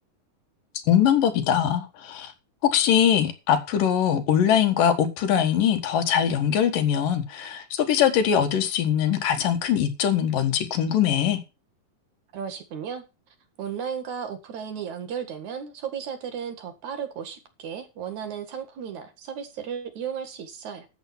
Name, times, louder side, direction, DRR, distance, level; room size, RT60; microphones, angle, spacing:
voice 1, 0.9-2.3 2.6-11.4, left 9 dB, 80° left, 3.2 m, -22 dB
voice 2, 12.3-13.0 13.6-20.9, right 7 dB, 60° right, 3.1 m, -34 dB
13.0 x 7.4 x 5.6 m
omnidirectional pair, 3.9 m